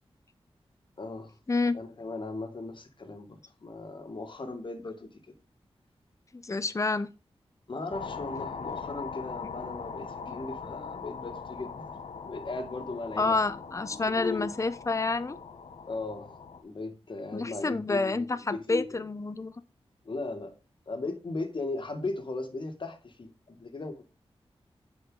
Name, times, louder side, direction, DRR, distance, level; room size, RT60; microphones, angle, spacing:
voice 1, 1.0-1.3 1.7-5.2 7.7-11.8 12.2-14.5 15.9-19.0 20.0-20.5 20.9-24.1, left 3 dB, 50° left, 2.0 m, -37 dB
voice 2, 6.3-7.1 13.2-15.4 17.3-19.5, left 3 dB, 30° left, 0.7 m, -28 dB
sound 1, 7.9-16.6, left 5 dB, 80° left, 1.0 m, -41 dB
9.6 x 5.2 x 3.9 m
wide cardioid pair, 80°, 10 cm